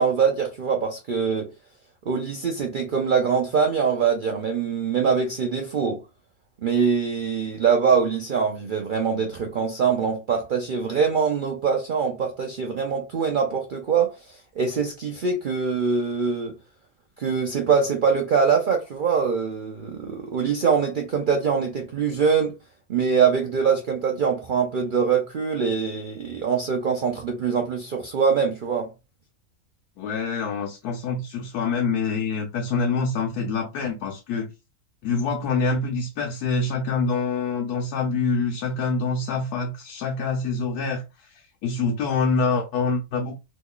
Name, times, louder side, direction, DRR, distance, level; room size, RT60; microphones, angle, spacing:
voice 1, 0.0-1.5 2.1-6.0 6.6-16.5 17.2-22.6 22.9-28.9, right 6 dB, 75° right, 0.4 m, -23 dB
voice 2, 30.0-34.5 35.0-43.4, left 4 dB, 90° left, 1.2 m, -26 dB
3.0 x 2.3 x 3.5 m
omnidirectional pair, 1.6 m